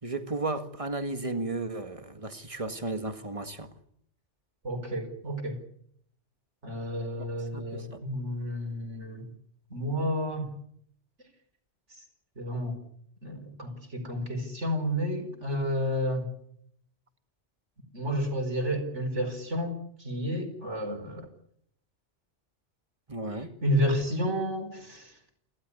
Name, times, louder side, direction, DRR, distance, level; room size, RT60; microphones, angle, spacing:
voice 1, 0.0-3.7 7.2-8.0 23.1-23.5, right 2 dB, 30° right, 9 dB, 1.9 m, -34 dB
voice 2, 4.6-5.6 6.6-9.3 9.7-10.5 12.4-12.8 13.2-16.3 17.9-21.3 23.6-25.1, equal, 80° right, 6 dB, 5.3 m, -31 dB
29.0 x 13.5 x 9.8 m, 0.69 s
omnidirectional pair, 1.2 m